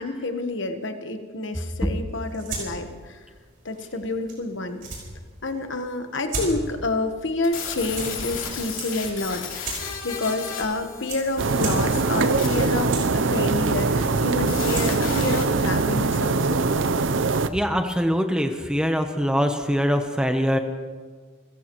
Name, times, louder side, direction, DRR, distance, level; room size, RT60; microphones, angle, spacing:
voice 1, 0.0-3.2 3.6-4.8 5.4-9.5 10.0-16.6, left 2 dB, 60° left, 7 dB, 1.2 m, -28 dB
sound 1, 2.1-16.5, right 3 dB, 40° right, 5.6 m, -39 dB
sound 2, 7.4-15.4, left 6 dB, 75° left, 3.2 m, -35 dB
sound 3, 11.4-17.5, right 3 dB, 65° right, 0.6 m, -22 dB
voice 2, 17.5-20.6, equal, 5° right, 5 dB, 0.9 m, -23 dB
29.0 x 15.0 x 3.1 m, 1.5 s
head